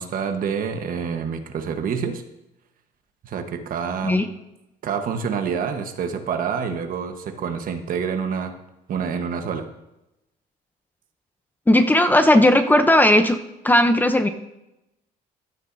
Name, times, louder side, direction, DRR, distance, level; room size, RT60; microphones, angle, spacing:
voice 1, 0.0-2.2 3.2-4.2 4.8-8.5 8.9-9.7, right 6 dB, 55° right, 6 dB, 1.2 m, -27 dB
voice 2, 11.7-13.4 13.6-14.3, left 1 dB, 10° left, 8 dB, 0.7 m, -16 dB
15.0 x 9.8 x 2.7 m, 0.90 s
cardioid pair, 110°, 17 cm